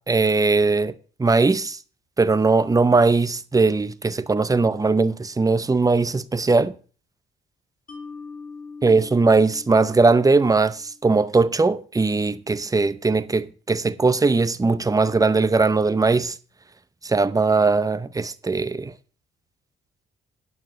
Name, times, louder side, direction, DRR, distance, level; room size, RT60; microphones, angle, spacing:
voice 1, 0.1-0.9 1.2-1.8 2.2-6.7 8.8-16.3 17.0-18.9, right 3 dB, 15° right, 0.7 m, -19 dB
Mallet percussion, 7.9-11.2, left 4 dB, 45° left, 2.1 m, -42 dB
9.2 x 5.9 x 7.7 m
cardioid pair, 90°, 20 cm